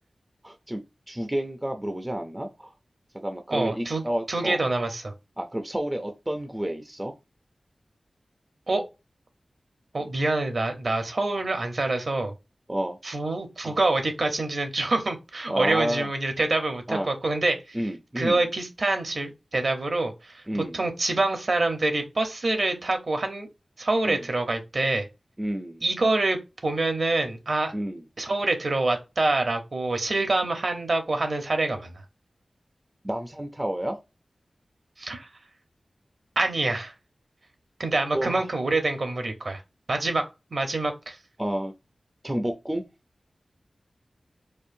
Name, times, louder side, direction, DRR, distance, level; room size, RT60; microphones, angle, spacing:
voice 1, 0.4-0.8 1.1-2.7 3.1-4.7 5.4-7.1 12.7-13.2 13.6-13.8 15.5-16.1 16.9-17.1 17.7-18.4 20.5-20.8 24.0-24.2 25.4-25.8 27.7-28.0 33.0-34.0 38.1-38.5 41.4-41.7 42.2-42.8, right 1 dB, 15° right, 0.5 m, -30 dB
voice 2, 3.5-4.0 4.3-5.1 8.7-8.8 9.9-12.3 13.0-17.8 18.2-20.4 20.7-23.5 23.8-25.1 25.8-27.7 28.2-32.0 35.0-35.3 36.4-36.9 37.8-39.6 39.9-40.2 40.5-41.2, right 2 dB, 60° right, 0.9 m, -26 dB
4.4 x 2.5 x 2.6 m
wide cardioid pair, 90°, 0 cm